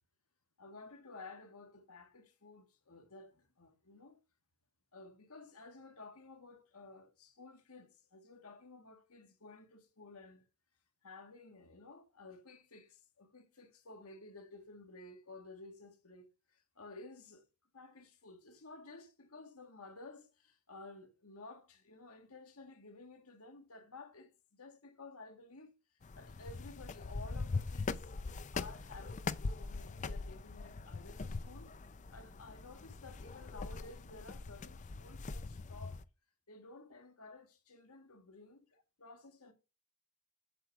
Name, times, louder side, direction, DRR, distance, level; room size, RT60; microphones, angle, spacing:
voice 1, 0.6-4.2 4.9-10.4 11.0-17.4 17.7-28.1 28.5-31.7 32.1-36.0 36.5-38.6 39.0-39.5, left 3 dB, 80° left, 1.8 m, -54 dB
sound 1, 26.0-36.0, left 3 dB, 35° left, 0.4 m, -42 dB
8.1 x 7.7 x 3.5 m
head